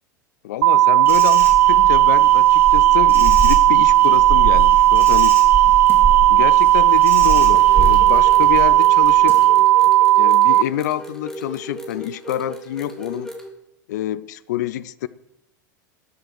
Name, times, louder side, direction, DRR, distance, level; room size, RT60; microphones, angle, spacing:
voice 1, 0.4-5.4 6.3-9.7 10.2-13.3 13.9-15.1, left 13 dB, 60° left, 0.6 m, -27 dB
sound 1, 0.6-10.6, right 14 dB, 55° right, 0.4 m, -14 dB
Insect, 1.1-9.5, right 2 dB, 20° right, 4.3 m, -27 dB
sound 2, 7.5-13.5, right 1 dB, 5° left, 2.9 m, -36 dB
12.5 x 7.9 x 7.7 m
figure-of-eight pair, 85°, 10 cm